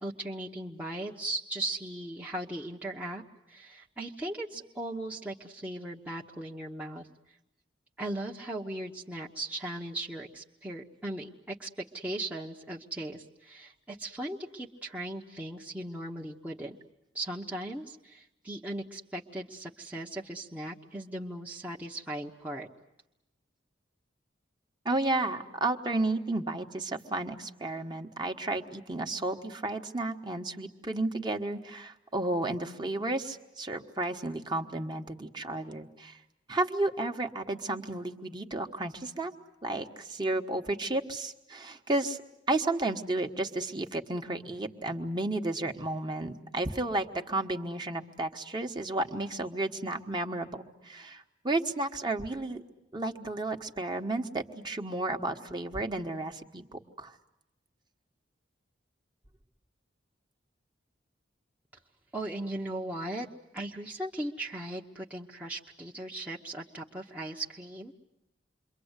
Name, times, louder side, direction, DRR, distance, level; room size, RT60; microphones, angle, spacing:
voice 1, 0.0-3.2 3.5-7.1 8.0-16.8 17.1-22.7 62.1-63.3 63.5-67.9, right 1 dB, 10° right, -2 dB, 1.0 m, -38 dB
voice 2, 24.8-36.2 36.5-39.3 39.6-42.2 42.5-52.6 52.9-57.1, right 2 dB, 25° right, 4 dB, 1.2 m, -32 dB
28.0 x 23.5 x 8.1 m, 0.88 s
head